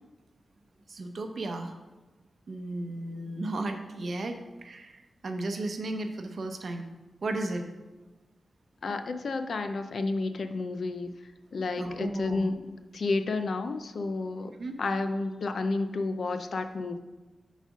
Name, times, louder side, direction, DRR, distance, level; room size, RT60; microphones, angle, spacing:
voice 1, 0.9-1.8 2.5-6.8 7.2-7.6 11.8-12.5 14.6-14.7, right 2 dB, 50° right, 5 dB, 0.7 m, -34 dB
voice 2, 8.8-11.1 11.5-12.6 12.9-14.5 14.8-17.0, left 3 dB, 55° left, 8 dB, 0.5 m, -31 dB
7.3 x 4.1 x 6.2 m, 1.2 s
wide cardioid pair, 170°, 0 cm